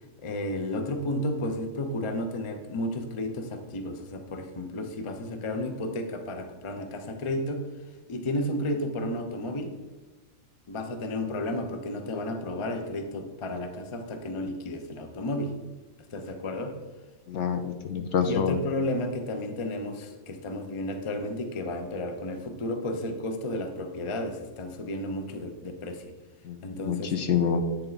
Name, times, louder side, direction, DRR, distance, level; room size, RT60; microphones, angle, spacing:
voice 1, 0.2-7.6 8.1-9.7 10.7-15.6 16.1-16.8 18.2-26.1 26.6-27.1, left 1 dB, 35° left, 6 dB, 0.5 m, -32 dB
voice 2, 17.3-18.6 26.4-27.8, left 6 dB, 65° left, 7 dB, 0.9 m, -27 dB
9.9 x 4.3 x 4.0 m, 1.2 s
omnidirectional pair, 1.4 m